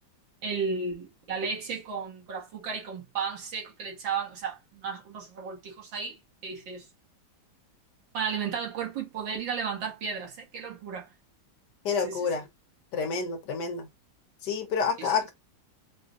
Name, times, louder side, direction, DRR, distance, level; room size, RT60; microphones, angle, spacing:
voice 1, 0.4-6.9 8.1-11.1 12.0-12.2 15.0-15.2, right 5 dB, 70° right, 2.1 m, -34 dB
voice 2, 11.8-12.4 12.9-13.9 14.4-15.3, left 5 dB, 65° left, 1.3 m, -28 dB
4.7 x 2.4 x 2.5 m
omnidirectional pair, 2.1 m